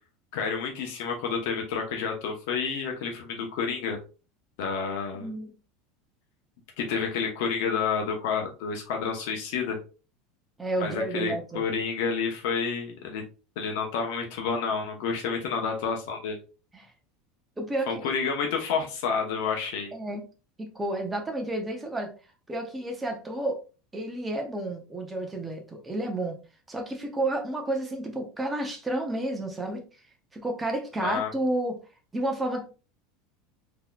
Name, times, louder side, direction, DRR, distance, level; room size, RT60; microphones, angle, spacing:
voice 1, 0.3-4.0 4.6-5.3 6.8-9.8 10.8-13.2 13.6-16.4 17.9-19.9 31.0-31.3, left 5 dB, 65° left, 2 dB, 0.8 m, -29 dB
voice 2, 5.1-5.5 10.6-11.7 16.7-16.9 17.6-18.1 19.9-20.2 20.6-22.1 22.5-23.6 23.9-26.4 26.7-29.8 30.3-31.8 32.1-32.6, right 1 dB, 10° right, 3 dB, 0.7 m, -31 dB
3.8 x 2.9 x 2.3 m, 0.33 s
supercardioid pair, 155°, 0 cm